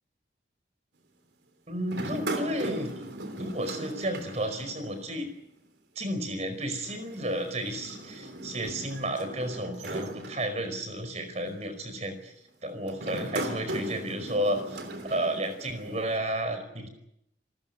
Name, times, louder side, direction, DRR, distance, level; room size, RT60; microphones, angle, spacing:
voice 1, 1.7-3.0 3.4-5.3 5.9-12.3 12.6-14.8 15.1-16.9, right 1 dB, 40° right, 8 dB, 5.0 m, -32 dB
sound 1, 1.9-5.2 5.5-5.6 6.8-11.0 11.6-11.9 12.9-16.2, right 1 dB, 70° right, 3.4 m, -38 dB
28.0 x 14.0 x 9.4 m, 0.82 s
head